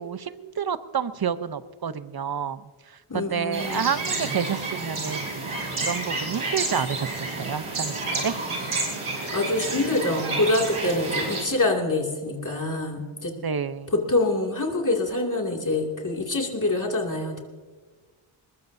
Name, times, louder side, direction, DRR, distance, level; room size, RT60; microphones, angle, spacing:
voice 1, 0.0-2.7 3.1-5.3 5.8-8.3 13.4-13.9, right 7 dB, 45° right, 13 dB, 0.8 m, -29 dB
voice 2, 3.1-3.8 9.3-13.3 13.9-17.4, left 2 dB, 40° left, 0 dB, 2.6 m, -25 dB
sound 1, 3.5-11.4, right 3 dB, 85° right, 5.3 m, -30 dB
21.5 x 20.5 x 2.8 m, 1.4 s
wide cardioid pair, 65°, 50 cm